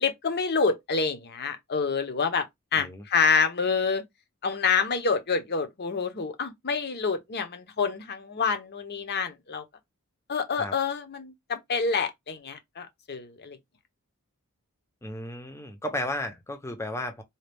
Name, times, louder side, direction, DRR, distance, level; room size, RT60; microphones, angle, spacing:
voice 1, 0.0-2.5 2.7-4.0 4.4-9.6 10.3-13.6, left 5 dB, 45° left, 0.7 m, -27 dB
voice 2, 15.0-17.2, left 1 dB, 10° left, 0.6 m, -34 dB
4.2 x 2.3 x 3.4 m
head